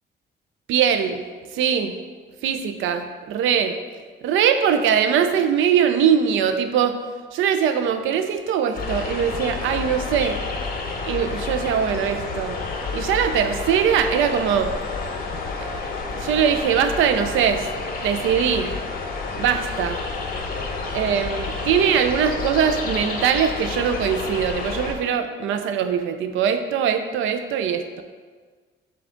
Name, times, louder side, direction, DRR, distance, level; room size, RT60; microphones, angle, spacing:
voice 1, 0.7-1.2 1.5-2.0 2.4-3.8 4.2-7.0 7.3-10.4 11.1-12.6 12.9-14.7 15.6-15.8 16.1-17.7 18.0-18.7 19.4-20.0 20.9-28.0, right 8 dB, 80° right, 8 dB, 0.4 m, -21 dB
sound 1, 8.8-24.9, left 4 dB, 50° left, 0.7 m, -29 dB
6.0 x 2.3 x 3.7 m, 1.5 s
cardioid pair, 90°, 20 cm